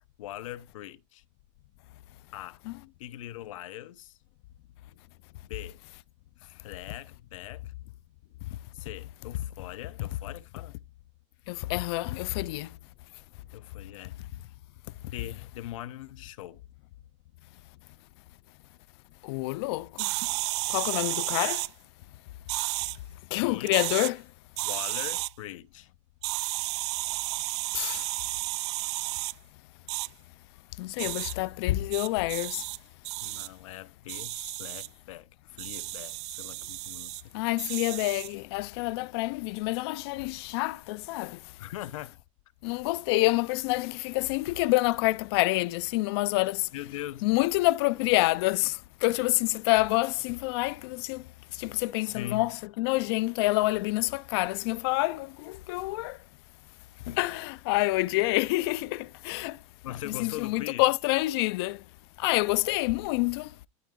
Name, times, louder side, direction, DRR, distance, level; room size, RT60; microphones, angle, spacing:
voice 1, 0.2-1.2 2.3-2.6 3.0-4.2 5.4-5.8 6.4-7.7 8.7-10.8 13.5-14.2 15.0-16.6 23.4-23.8 24.6-25.9 33.2-37.3 41.6-42.2 46.7-47.3 52.0-52.5 57.1-57.2 59.8-60.9, left 13 dB, 85° left, 0.9 m, -41 dB
voice 2, 11.5-12.7 19.2-20.1 20.7-21.6 23.3-24.3 27.7-28.1 30.8-32.6 37.3-41.4 42.6-46.7 47.2-56.2 57.2-59.6 60.2-61.8 62.2-63.5, left 20 dB, 55° left, 0.5 m, -27 dB
sound 1, 20.0-21.7 22.5-23.0 23.6-24.1 24.6-25.3 26.2-29.3 29.9-30.1 31.0-31.3 31.9-32.8 33.0-33.5 34.1-34.9 35.6-37.2 37.6-38.3, right 19 dB, 60° right, 0.4 m, -32 dB
12.0 x 4.7 x 3.8 m
supercardioid pair, 165°, 16 cm